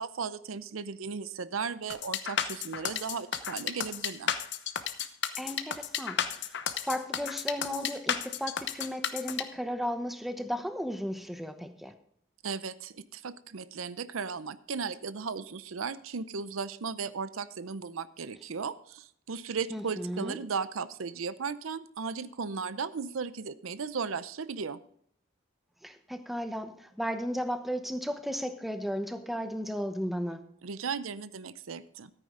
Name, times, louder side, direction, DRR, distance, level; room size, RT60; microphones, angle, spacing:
voice 1, 0.0-4.4 12.4-24.8 30.6-32.1, right 5 dB, 85° right, 15 dB, 0.6 m, -36 dB
sound 1, 1.9-9.4, left 8 dB, 55° left, 0.9 m, -32 dB
voice 2, 5.4-6.5 6.8-11.9 19.7-20.4 25.8-30.4, equal, ahead, 8 dB, 0.9 m, -35 dB
13.5 x 9.2 x 3.8 m, 0.66 s
head